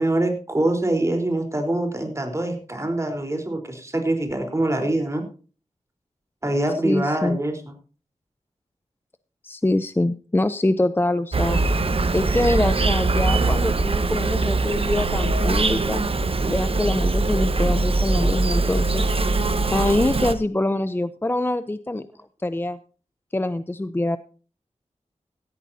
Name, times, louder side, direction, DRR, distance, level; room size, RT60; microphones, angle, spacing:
voice 1, 0.0-5.2 6.4-7.7, right 1 dB, 25° right, 4 dB, 4.0 m, -24 dB
voice 2, 6.8-7.4 9.4-11.6 12.1-16.1 16.5-19.1 19.7-22.1 22.4-22.8 23.3-24.2, left 2 dB, 15° left, 12 dB, 0.6 m, -24 dB
Insect, 11.3-20.3, right 3 dB, 50° right, 1.2 m, -22 dB
17.5 x 13.5 x 2.8 m, 0.37 s
wide cardioid pair, 110°, 12 cm